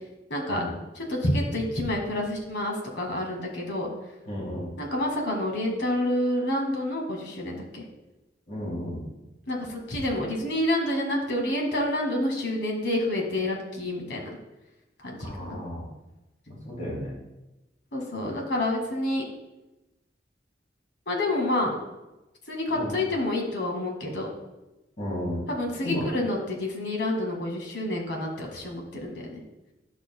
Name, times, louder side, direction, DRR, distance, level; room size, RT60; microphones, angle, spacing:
voice 1, 0.3-0.6 1.0-3.9 4.8-7.8 9.5-14.3 15.0-15.6 17.9-19.3 21.1-21.7 22.5-24.3 25.5-29.4, left 1 dB, 75° left, 0 dB, 1.9 m, -28 dB
voice 2, 4.3-4.7 8.5-9.1 15.2-15.8 16.5-17.1 22.7-22.9 25.0-25.4 25.8-26.1, left 1 dB, 45° left, -5 dB, 2.8 m, -33 dB
11.0 x 6.2 x 2.2 m, 0.99 s
head